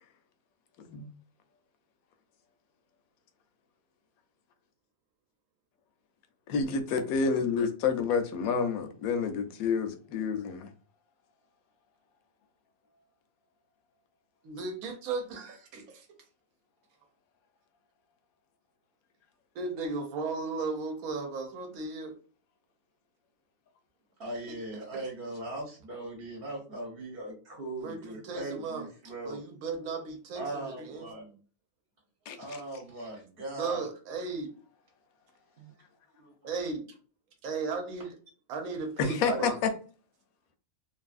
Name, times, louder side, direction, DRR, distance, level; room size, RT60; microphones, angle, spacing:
voice 1, 6.5-10.7 32.3-32.4 39.0-39.5, left 5 dB, 80° left, 1.0 m, -29 dB
voice 2, 14.4-16.1 19.5-22.2 24.5-24.6 24.9-25.0 27.8-28.9 29.2-31.1 33.5-34.5 36.4-36.9 37.4-38.2 38.5-39.6, right 4 dB, 85° right, 1.1 m, -36 dB
voice 3, 24.2-29.4 30.3-31.2 32.3-33.8 35.6-35.7 36.2-36.3 39.2-39.6, right 2 dB, 45° right, 0.9 m, -39 dB
2.8 x 2.6 x 2.4 m
omnidirectional pair, 1.5 m